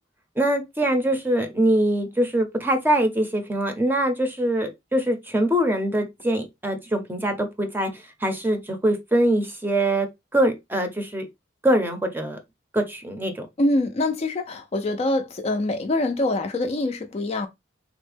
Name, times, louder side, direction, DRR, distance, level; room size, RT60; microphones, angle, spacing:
voice 1, 0.4-7.9 8.2-10.1 10.3-11.3 11.6-12.4 12.7-13.5, right 1 dB, 10° right, 0.6 m, -23 dB
voice 2, 13.6-17.5, left 2 dB, 35° left, 0.4 m, -24 dB
3.4 x 2.1 x 3.3 m
head